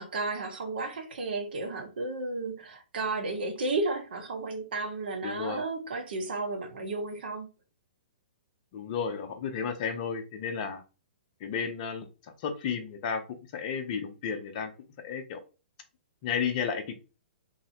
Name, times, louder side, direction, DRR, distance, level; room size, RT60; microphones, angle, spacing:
voice 1, 0.0-7.5, right 3 dB, 65° right, 0.7 m, -33 dB
voice 2, 5.2-5.6 8.7-10.8 11.4-12.1 12.4-13.2 13.5-14.7 15.0-15.4 16.2-17.0, left 6 dB, 40° left, 0.5 m, -32 dB
2.7 x 2.0 x 2.7 m
figure-of-eight pair, 120°, 6 cm